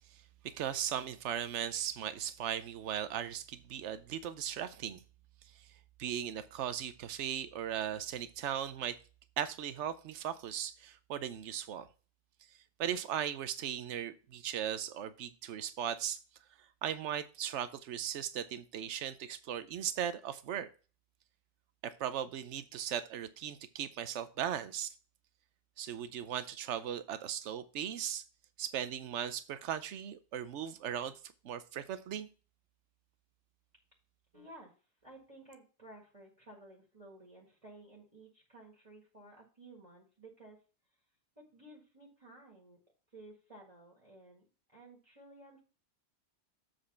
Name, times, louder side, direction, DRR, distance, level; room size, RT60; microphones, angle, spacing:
voice 1, 0.1-5.0 5.5-5.7 6.0-9.0 9.4-11.9 12.8-16.2 16.8-20.7 21.8-24.9 25.8-28.2 28.6-31.2 31.4-32.3, right 9 dB, 90° right, 12 dB, 1.0 m, -38 dB
voice 2, 34.3-34.7 35.0-40.6 41.4-42.8 43.1-44.4 44.7-45.6, right 2 dB, 30° right, -2 dB, 1.9 m, -55 dB
7.8 x 4.3 x 5.6 m, 0.35 s
omnidirectional pair, 1.2 m